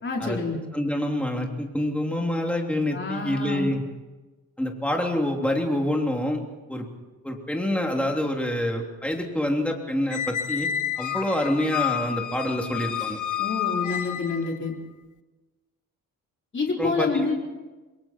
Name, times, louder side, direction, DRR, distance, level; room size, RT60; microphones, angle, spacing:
voice 1, 0.0-0.6 2.9-3.7 13.4-14.7 16.5-17.4, left 4 dB, 30° left, -1 dB, 4.4 m, -28 dB
voice 2, 0.7-3.8 4.6-6.4 6.7-6.9 7.2-10.7 11.0-13.2 16.8-17.3, left 1 dB, 5° left, 1 dB, 3.2 m, -26 dB
Squeak, 10.1-14.6, left 10 dB, 55° left, 1.1 m, -29 dB
28.0 x 22.0 x 4.5 m, 1.2 s
cardioid pair, 130°, 36 cm